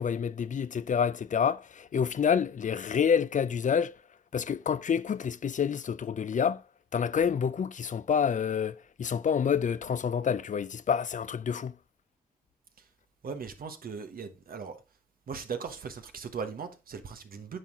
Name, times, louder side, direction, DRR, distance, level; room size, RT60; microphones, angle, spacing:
voice 1, 0.0-4.0 4.3-6.6 6.9-11.7, left 7 dB, 55° left, 0.5 m, -28 dB
voice 2, 13.2-14.8 15.3-17.6, right 5 dB, 70° right, 1.2 m, -38 dB
9.4 x 4.5 x 3.6 m
cardioid pair, 45°, 15 cm